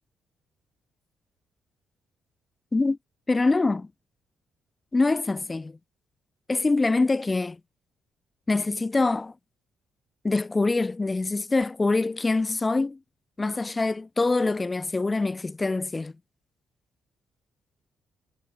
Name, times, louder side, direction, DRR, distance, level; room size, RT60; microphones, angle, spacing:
voice 1, 3.3-3.9 4.9-5.7 6.5-7.6 8.5-9.3 10.2-13.0 13.4-16.1, left 3 dB, 20° left, 1.5 m, -24 dB
cardioid pair, 90°, 0 cm